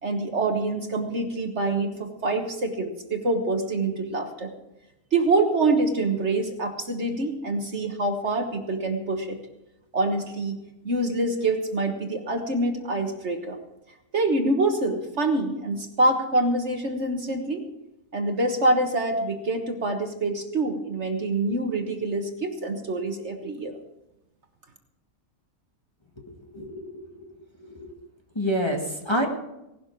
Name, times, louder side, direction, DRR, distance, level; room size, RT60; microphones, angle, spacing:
voice 1, 0.0-4.5 5.1-9.4 9.9-10.6 10.8-13.6 14.1-17.6 18.1-23.8, right 2 dB, 50° right, 5 dB, 1.5 m, -25 dB
voice 2, 26.5-27.3 27.6-27.9 28.3-29.3, equal, 20° left, 0 dB, 1.6 m, -28 dB
18.0 x 12.0 x 4.6 m, 0.92 s
omnidirectional pair, 1.6 m